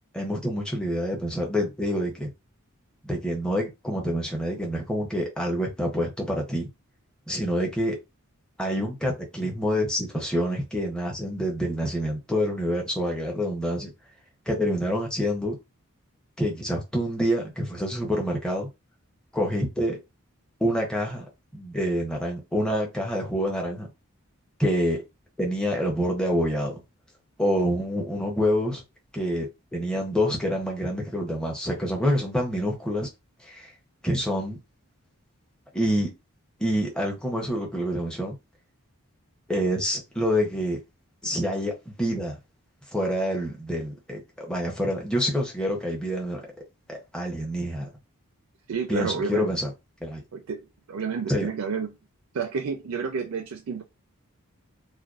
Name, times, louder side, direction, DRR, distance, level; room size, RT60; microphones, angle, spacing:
voice 1, 0.1-2.3 3.0-6.7 7.3-8.0 8.6-13.9 14.5-15.6 16.4-18.7 19.3-20.0 20.6-21.3 21.5-23.9 24.6-25.0 25.4-26.8 27.4-28.8 29.1-33.1 33.4-33.7 34.0-34.6 35.7-36.1 36.6-38.3 39.5-40.8 41.2-42.4 42.9-46.4 46.9-47.9 48.9-49.7 50.0-50.2 51.3-51.5, equal, 5° left, 0.5 m, -27 dB
voice 2, 48.7-49.5 50.3-51.9 52.3-53.8, right 5 dB, 75° right, 0.4 m, -30 dB
2.5 x 2.2 x 2.3 m
head